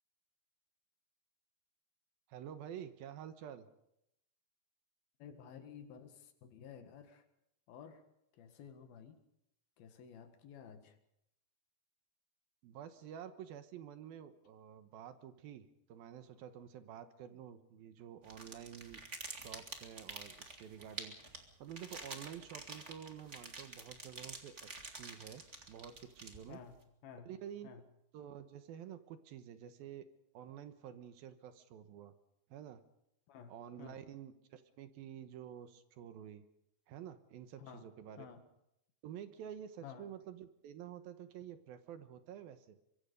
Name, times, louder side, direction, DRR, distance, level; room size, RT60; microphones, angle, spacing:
voice 1, 2.3-3.7 12.6-19.0 19.3-21.1 21.6-26.6 27.3-27.7 28.1-30.1 30.3-32.1 32.5-32.8 33.5-36.4 36.9-38.3 39.0-42.8, right 9 dB, 75° right, 10 dB, 2.9 m, -50 dB
voice 2, 5.2-7.3 7.7-8.0 8.3-9.2 9.8-11.0 26.5-27.3 27.6-27.8 33.3-34.0 37.6-37.9 38.2-38.4 39.8-40.1, left 7 dB, 70° left, 8 dB, 3.5 m, -53 dB
sound 1, 18.2-26.7, right 3 dB, 25° right, 1.7 m, -48 dB
24.0 x 24.0 x 5.3 m, 0.81 s
omnidirectional pair, 4.5 m